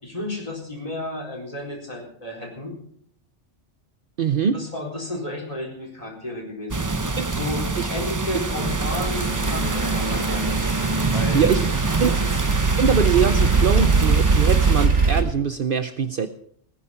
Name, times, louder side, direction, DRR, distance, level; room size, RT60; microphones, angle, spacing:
voice 1, 0.0-2.7 4.5-6.9 7.3-10.7 11.1-11.6 12.0-12.3, left 1 dB, 30° left, 0 dB, 4.3 m, -32 dB
voice 2, 4.2-4.6 7.2-7.3 7.8-7.9 11.3-11.7 12.0-12.1 12.8-16.3, right 7 dB, 55° right, 10 dB, 0.8 m, -22 dB
sound 1, 6.7-14.9, right 3 dB, 20° right, 0.6 m, -26 dB
sound 2, 8.5-15.2, right 4 dB, 80° right, 3.4 m, -22 dB
18.0 x 9.9 x 5.6 m, 0.64 s
omnidirectional pair, 1.2 m